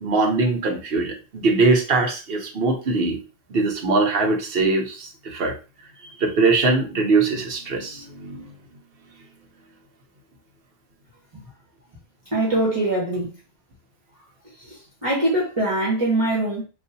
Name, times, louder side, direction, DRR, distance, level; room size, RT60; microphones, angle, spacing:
voice 1, 0.0-3.2 3.5-5.6 6.2-8.4, right 3 dB, 65° right, 1.0 m, -21 dB
voice 2, 12.3-13.3 14.6-16.6, right 1 dB, 30° right, 1.2 m, -23 dB
4.0 x 2.6 x 2.6 m
omnidirectional pair, 1.1 m